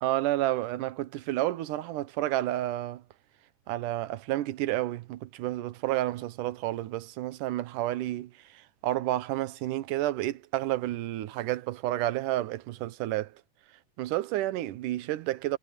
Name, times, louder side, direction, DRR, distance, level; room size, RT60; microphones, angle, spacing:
voice 1, 0.0-3.0 3.7-13.3 14.0-15.6, right 15 dB, 80° right, 2.4 m, -30 dB
omnidirectional pair, 3.8 m